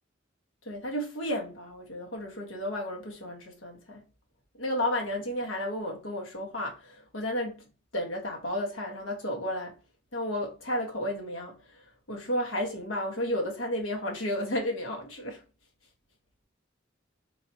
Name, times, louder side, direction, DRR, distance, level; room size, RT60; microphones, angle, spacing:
voice 1, 0.6-4.0 4.6-7.7 7.9-9.8 10.1-15.4, left 1 dB, 80° left, 1.5 m, -32 dB
4.1 x 4.0 x 2.8 m
head